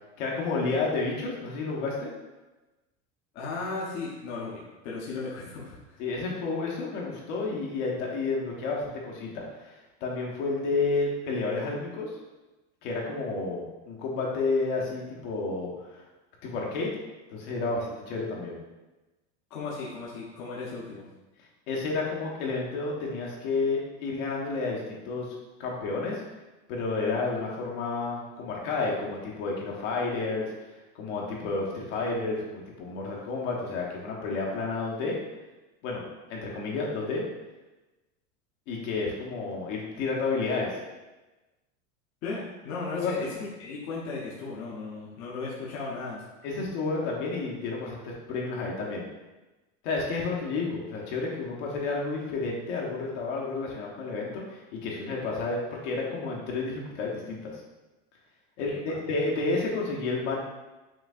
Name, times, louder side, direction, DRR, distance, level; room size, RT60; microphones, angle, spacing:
voice 1, 0.2-2.1 6.0-12.1 12.8-16.0 16.4-16.9 17.3-18.6 21.7-25.3 25.6-26.2 26.7-30.5 31.0-35.2 35.8-36.0 36.3-37.2 38.7-40.8 42.9-43.3 46.4-49.0 49.8-57.6 58.6-60.4, left 3 dB, 65° left, -3 dB, 1.2 m, -31 dB
voice 2, 3.3-5.8 19.5-21.0 42.2-43.3 43.6-46.2 58.6-59.0, left 3 dB, 40° left, -5 dB, 0.8 m, -36 dB
5.9 x 2.7 x 2.5 m, 1.1 s
supercardioid pair, 155°, 38 cm